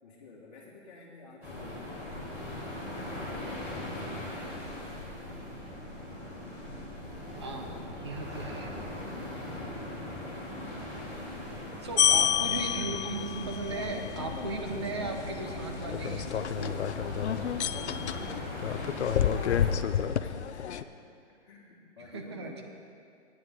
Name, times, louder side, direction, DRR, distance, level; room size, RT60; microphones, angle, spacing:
voice 1, 0.0-2.2 3.2-4.7 12.0-12.4 18.3-22.6, left 3 dB, 40° left, -7 dB, 1.8 m, -51 dB
sound 1, 1.4-19.7, left 1 dB, 5° right, 1.9 m, -40 dB
voice 2, 7.3-8.7 11.8-16.8 22.0-22.6, right 3 dB, 25° right, 3 dB, 0.7 m, -37 dB
sound 2, 12.0-20.8, left 9 dB, 65° left, 0.6 m, -30 dB
15.5 x 9.9 x 3.8 m, 2.4 s
hypercardioid pair, 170°, 36 cm